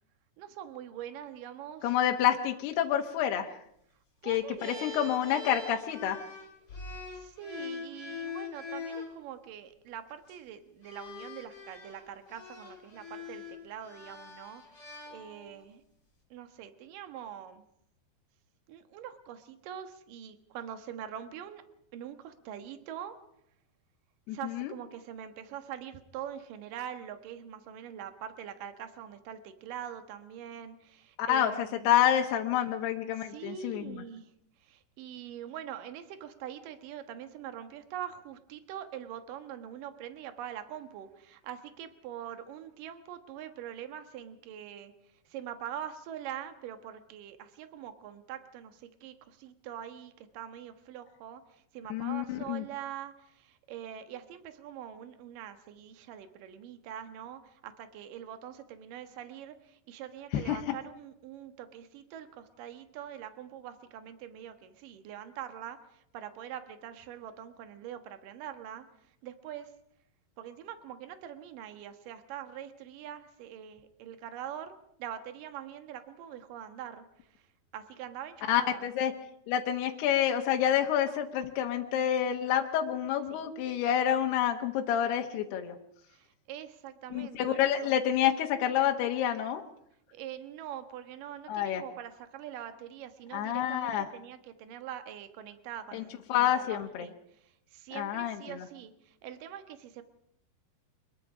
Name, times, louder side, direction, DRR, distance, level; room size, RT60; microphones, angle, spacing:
voice 1, 0.4-1.9 4.2-5.0 6.8-15.8 16.3-17.6 18.7-21.6 21.9-23.2 24.3-31.9 33.2-34.3 34.6-44.9 45.3-68.9 69.2-69.7 70.4-77.5 77.7-78.9 83.3-83.5 86.1-88.0 90.1-100.0, right 10 dB, 65° right, 9 dB, 2.7 m, -44 dB
voice 2, 1.8-3.6 4.2-6.2 24.3-24.7 31.2-34.0 51.9-52.6 60.3-60.8 78.5-79.1 79.5-85.8 87.1-89.6 91.5-91.8 93.3-94.1 95.9-96.0 96.3-97.1 97.9-98.6, left 10 dB, 75° left, 3 dB, 3.1 m, -28 dB
sound 1, 4.6-9.1 10.1-10.3 10.8-15.7, left 5 dB, 25° left, 5.9 m, -43 dB
25.0 x 21.5 x 5.0 m, 0.74 s
omnidirectional pair, 4.8 m